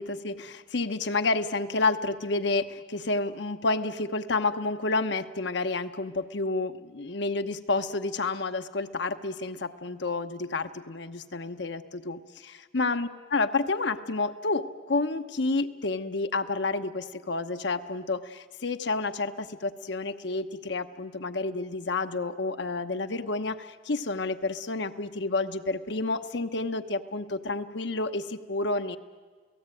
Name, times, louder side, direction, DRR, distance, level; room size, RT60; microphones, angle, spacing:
voice 1, 0.0-29.0, left 3 dB, 65° left, 9 dB, 1.0 m, -30 dB
29.0 x 18.0 x 9.1 m, 1.5 s
head